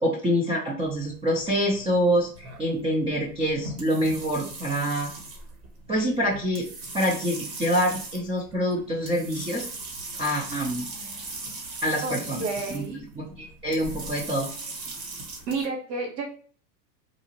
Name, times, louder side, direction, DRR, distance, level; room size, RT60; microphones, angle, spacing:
voice 1, 0.0-5.1 5.9-6.7 6.9-9.7 10.2-10.9 11.8-14.5, equal, 15° right, -3 dB, 0.5 m, -26 dB
sound 1, 0.8-15.7, right 3 dB, 65° right, 1.4 m, -39 dB
voice 2, 12.4-13.0 15.5-16.3, right 3 dB, 85° right, 0 dB, 1.3 m, -30 dB
3.8 x 2.3 x 2.8 m, 0.42 s
hypercardioid pair, 120°, 50 cm